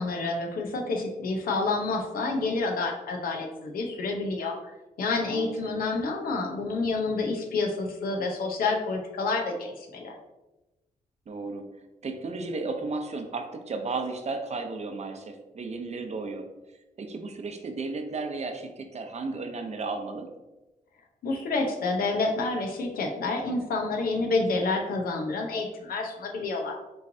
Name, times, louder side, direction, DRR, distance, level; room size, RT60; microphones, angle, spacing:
voice 1, 0.0-4.6 5.0-10.1 21.2-26.7, left 3 dB, 80° left, 1 dB, 0.8 m, -28 dB
voice 2, 5.3-5.7 11.3-11.7 12.0-16.4 17.0-20.3, right 3 dB, 50° right, 5 dB, 0.7 m, -34 dB
5.5 x 3.1 x 2.7 m, 1.0 s
cardioid pair, 75°, 15 cm